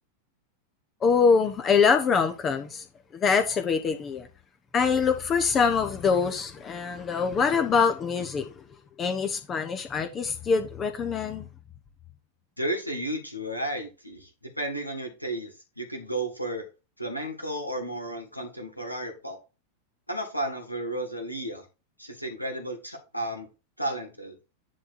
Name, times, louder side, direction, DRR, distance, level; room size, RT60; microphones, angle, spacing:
voice 1, 1.0-2.8 3.1-4.3 4.7-8.6 9.0-11.5, left 5 dB, 25° left, 1.0 m, -24 dB
voice 2, 12.6-14.3 14.6-16.6 17.0-19.4 20.1-21.6 22.0-23.5 23.8-24.4, right 1 dB, 90° left, 2.3 m, -33 dB
10.0 x 3.9 x 4.3 m
figure-of-eight pair, 90°, 0 cm